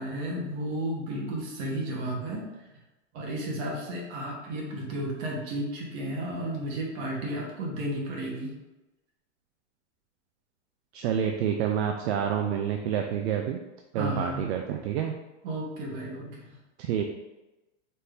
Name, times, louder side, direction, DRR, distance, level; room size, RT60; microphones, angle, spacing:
voice 1, 0.0-2.4 3.1-8.5 13.9-14.4 15.4-16.5, right 1 dB, 35° right, -3 dB, 1.2 m, -33 dB
voice 2, 10.9-13.6 13.9-15.1 16.8-17.0, right 9 dB, 60° right, 4 dB, 0.5 m, -28 dB
4.3 x 2.7 x 3.4 m, 1.0 s
supercardioid pair, 160°, 36 cm